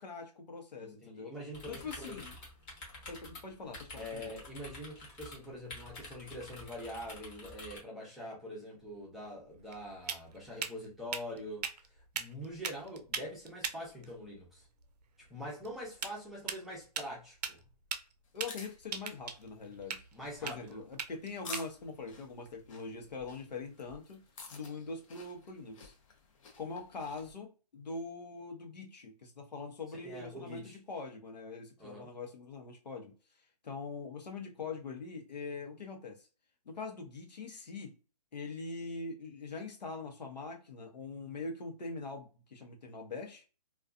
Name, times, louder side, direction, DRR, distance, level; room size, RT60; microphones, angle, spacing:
voice 1, 0.0-1.3 1.7-2.3 3.1-4.3 18.3-20.0 20.4-24.2 24.5-25.9 26.6-33.1 33.6-36.3 36.6-37.9 38.3-43.4, left 4 dB, 90° left, 0.9 m, -43 dB
voice 2, 0.8-2.2 3.9-14.7 15.3-17.6 20.1-20.8 30.0-30.8 31.8-32.1, equal, ahead, 0.6 m, -44 dB
sound 1, 1.5-7.8, left 2 dB, 25° left, 0.9 m, -49 dB
sound 2, 8.8-23.5, right 6 dB, 75° right, 0.5 m, -43 dB
sound 3, 18.3-27.3, left 4 dB, 50° left, 0.7 m, -52 dB
2.4 x 2.3 x 2.4 m
hypercardioid pair, 150°, 21 cm